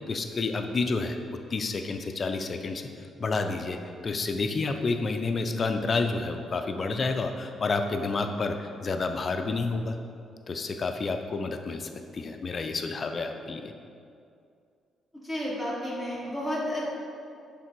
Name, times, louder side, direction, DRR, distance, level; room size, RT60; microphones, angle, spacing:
voice 1, 0.1-1.2 1.5-2.8 3.2-3.8 4.0-10.0 10.5-13.7, left 3 dB, 40° left, 6 dB, 0.4 m, -29 dB
voice 2, 15.1-16.8, equal, 10° right, -6 dB, 1.3 m, -31 dB
6.3 x 3.3 x 4.5 m, 2.4 s
cardioid pair, 90°, 0 cm